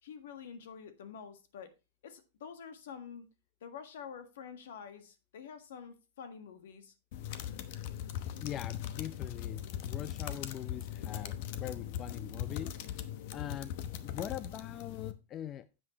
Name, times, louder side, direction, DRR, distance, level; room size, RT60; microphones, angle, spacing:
voice 1, 0.0-1.7 2.0-3.3 3.6-6.9, left 7 dB, 75° left, 1.6 m, -47 dB
sound 1, 7.1-15.1, left 10 dB, 55° left, 0.9 m, -40 dB
voice 2, 8.4-13.0 13.3-13.8 14.0-15.6, left 11 dB, 30° left, 0.4 m, -42 dB
9.5 x 7.7 x 3.0 m
hypercardioid pair, 130°, 0 cm